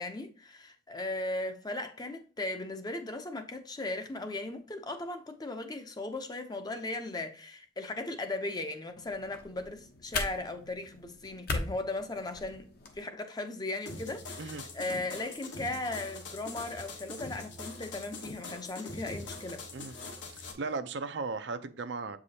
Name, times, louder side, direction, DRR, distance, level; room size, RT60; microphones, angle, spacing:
voice 1, 0.0-12.7 12.9-19.6, left 2 dB, 20° left, 0.6 m, -37 dB
sound 1, 9.0-13.0, left 3 dB, 55° left, 0.9 m, -39 dB
sound 2, 13.9-20.5, left 2 dB, 75° left, 1.1 m, -43 dB
voice 2, 20.3-22.2, right 4 dB, 65° right, 0.5 m, -36 dB
7.6 x 4.8 x 2.8 m
head